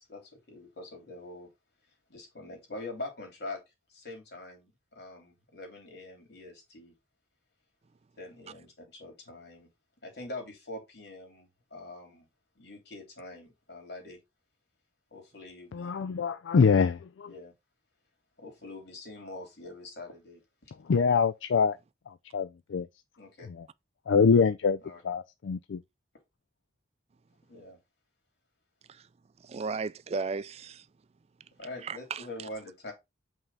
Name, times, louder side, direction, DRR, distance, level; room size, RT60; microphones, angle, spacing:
voice 1, 0.0-1.5 2.1-3.6 3.9-6.9 8.2-9.7 10.0-12.3 12.5-14.2 15.1-15.9 17.3-17.5 18.4-20.7 23.2-23.5 24.8-25.0 27.5-27.8 31.6-32.9, left 2 dB, 60° left, 3.3 m, -44 dB
voice 2, 15.7-17.4 20.7-21.8 22.1-22.9 23.4-23.7 24.1-25.8, left 5 dB, 90° left, 0.4 m, -25 dB
voice 3, 29.4-30.8 31.8-32.3, right 4 dB, 35° right, 0.3 m, -35 dB
5.7 x 3.6 x 5.5 m
head